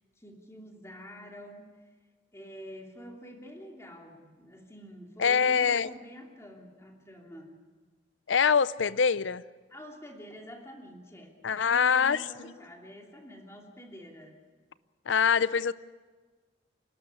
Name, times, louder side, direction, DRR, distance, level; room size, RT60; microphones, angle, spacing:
voice 1, 0.2-1.8 2.3-7.6 9.7-14.4, equal, 15° left, 2.9 m, -47 dB
voice 2, 5.2-5.9 8.3-9.4 11.4-12.2 15.1-15.7, left 6 dB, 80° left, 0.6 m, -24 dB
28.5 x 12.5 x 9.9 m
head